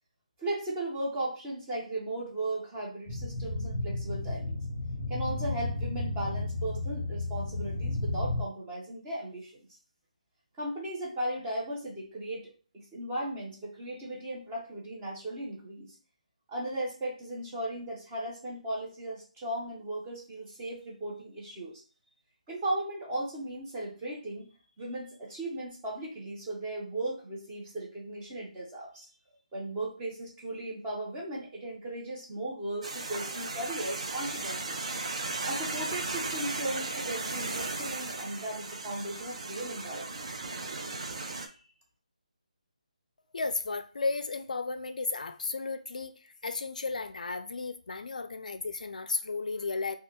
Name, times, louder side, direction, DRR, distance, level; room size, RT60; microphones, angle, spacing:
voice 1, 0.4-4.6 5.1-9.5 10.6-15.9 16.5-21.8 22.5-24.5 24.8-29.1 29.5-34.8 35.4-40.3, right 1 dB, 15° right, 0.8 m, -37 dB
sound 1, 3.1-8.4, left 2 dB, 30° right, 1.4 m, -33 dB
sound 2, 32.8-41.5, right 3 dB, 50° right, 0.5 m, -36 dB
voice 2, 43.3-50.0, left 4 dB, 70° left, 0.3 m, -34 dB
3.2 x 2.3 x 2.9 m
figure-of-eight pair, 165°, 4 cm